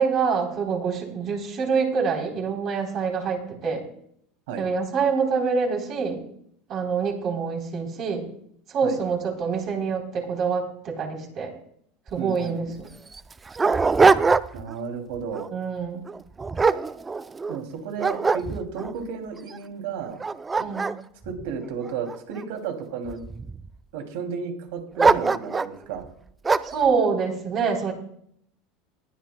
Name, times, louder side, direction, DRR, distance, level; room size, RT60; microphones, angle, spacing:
voice 1, 0.0-3.8 4.6-6.2 6.7-8.3 8.7-11.5 12.1-12.9 15.5-16.1 20.6-20.9 26.6-27.9, right 5 dB, 40° right, 1 dB, 3.4 m, -26 dB
Dog, 12.1-12.2 12.4-12.5 13.1-14.7 15.2-15.5 16.1-17.6 18.0-18.9 19.5-19.6 20.1-22.4 23.1-23.7 25.0-25.8 26.4-26.8, right 4 dB, 15° right, 0.4 m, -22 dB
voice 2, 12.2-12.8 14.5-15.5 17.5-20.2 21.2-23.2 23.9-26.1, right 6 dB, 80° right, 4 dB, 2.6 m, -33 dB
20.0 x 12.0 x 2.2 m, 0.67 s
supercardioid pair, 145°, 0 cm